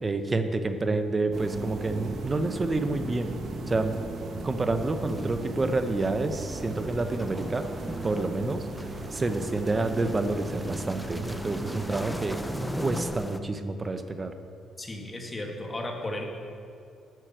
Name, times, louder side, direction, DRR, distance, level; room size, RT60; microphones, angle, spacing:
voice 1, 0.0-3.4 3.7-3.9 4.4-7.6 8.0-8.7 9.1-12.4 12.7-14.3, right 2 dB, 25° right, 8 dB, 0.8 m, -28 dB
sound 1, 1.3-13.0, right 2 dB, 60° right, 1.2 m, -37 dB
sound 2, 4.7-13.4, equal, 5° left, 0.6 m, -41 dB
voice 2, 14.8-16.2, left 1 dB, 25° left, 1 dB, 1.7 m, -34 dB
9.3 x 6.5 x 7.6 m, 2.5 s
cardioid pair, 90°, 0 cm